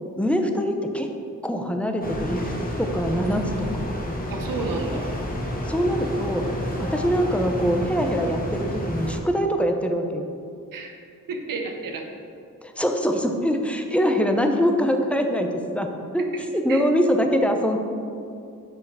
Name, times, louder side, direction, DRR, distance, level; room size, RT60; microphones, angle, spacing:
voice 1, 0.2-1.1 1.4-2.4 2.8-3.9 5.7-6.5 6.8-10.3 12.6-15.9 16.1-16.3 16.5-17.8, equal, 5° left, 4 dB, 0.5 m, -23 dB
sound 1, 2.0-9.2, equal, 25° left, 1.2 m, -30 dB
voice 2, 4.3-5.1 10.7-11.0 11.3-12.1 16.2-16.3 16.7-16.8, right 3 dB, 85° right, 3 dB, 0.9 m, -31 dB
6.3 x 5.0 x 4.7 m, 2.5 s
wide cardioid pair, 100°, 32 cm